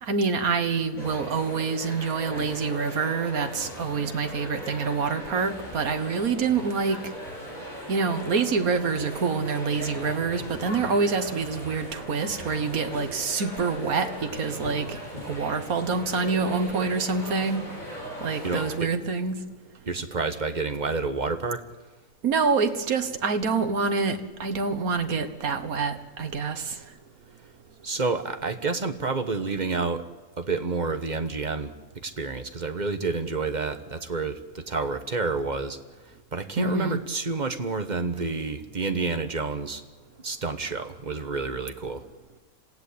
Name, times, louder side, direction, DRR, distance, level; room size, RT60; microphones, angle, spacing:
voice 1, 0.0-7.0 7.9-15.0 15.2-17.6 18.2-19.4 22.2-26.8 36.6-37.0, right 4 dB, 80° right, 8 dB, 1.9 m, -26 dB
sound 1, 1.0-18.7, equal, 30° left, 6.3 m, -38 dB
voice 2, 18.4-18.9 19.9-21.6 27.8-30.0 30.4-35.8 36.3-39.8 40.2-42.1, right 4 dB, 30° right, 8 dB, 1.4 m, -29 dB
27.0 x 16.5 x 8.7 m, 1.3 s
omnidirectional pair, 1.5 m